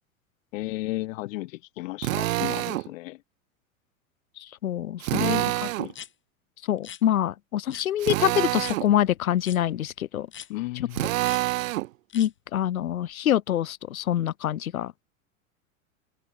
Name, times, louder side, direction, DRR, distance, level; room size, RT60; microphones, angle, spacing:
voice 1, 0.5-3.2 5.1-5.5 5.8-5.9 10.5-11.1, left 19 dB, 70° left, 0.9 m, -34 dB
Drill, 2.0-2.9 5.0-5.9 8.0-8.9 10.9-11.9, right 16 dB, 70° right, 1.4 m, -26 dB
voice 2, 4.4-5.4 6.7-10.3 10.8-10.9 12.1-14.9, left 11 dB, 85° left, 1.1 m, -25 dB
sound 1, 5.9-6.1 6.8-7.0 7.7-7.9 8.6-8.8 9.4-9.6 10.3-10.5 11.2-11.4 12.1-12.3, left 9 dB, 30° left, 2.4 m, -42 dB
open air
hypercardioid pair, 95°, 41 cm